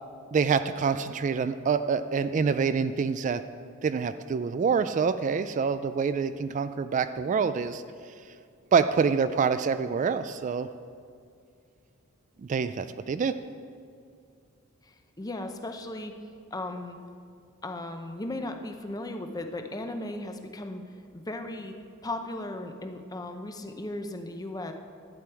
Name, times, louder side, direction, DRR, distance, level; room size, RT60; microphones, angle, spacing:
voice 1, 0.3-3.4 3.8-7.8 8.7-10.7 12.4-13.4, right 5 dB, 35° right, 11 dB, 0.3 m, -26 dB
voice 2, 14.8-16.1 16.5-17.0 17.6-20.8 21.1-21.7 22.0-24.7, left 1 dB, 15° left, 6 dB, 0.7 m, -36 dB
12.0 x 8.6 x 4.6 m, 2.3 s
head